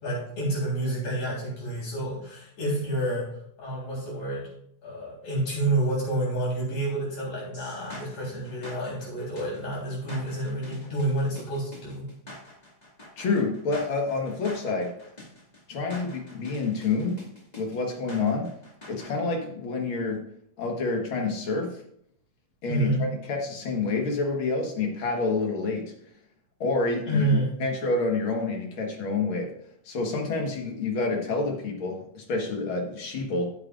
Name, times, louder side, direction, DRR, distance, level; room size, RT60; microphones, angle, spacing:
voice 1, 0.0-3.3 3.6-4.5 4.8-12.1 22.7-23.0 27.1-27.5, right 1 dB, 70° left, -5 dB, 5.0 m, -29 dB
sound 1, 7.5-19.1, left 1 dB, 20° left, 1.4 m, -45 dB
voice 2, 13.2-14.9 15.7-17.2 17.6-18.5 18.9-20.2 20.6-21.8 22.6-25.9 26.6-29.5 29.9-33.5, left 3 dB, 50° left, 1 dB, 2.0 m, -28 dB
13.5 x 7.4 x 2.5 m, 0.72 s
omnidirectional pair, 3.3 m